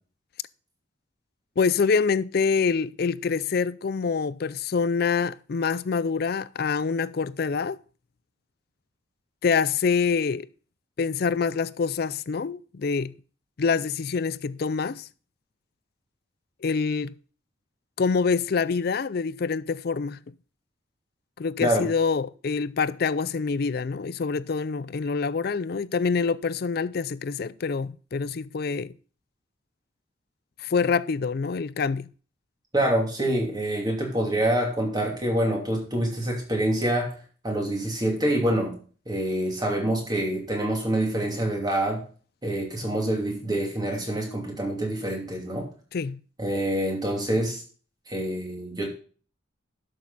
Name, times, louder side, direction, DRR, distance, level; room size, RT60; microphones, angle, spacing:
voice 1, 1.6-7.8 9.4-10.5 11.0-13.1 13.6-15.1 16.6-17.1 18.0-20.2 21.4-28.9 30.6-32.1 45.9-46.2, left 5 dB, 50° left, 0.4 m, -26 dB
voice 2, 32.7-37.1 37.4-38.8 39.1-42.1 42.4-45.7 46.4-47.6 48.1-48.9, right 1 dB, 20° right, 2.7 m, -26 dB
11.5 x 6.6 x 4.0 m
head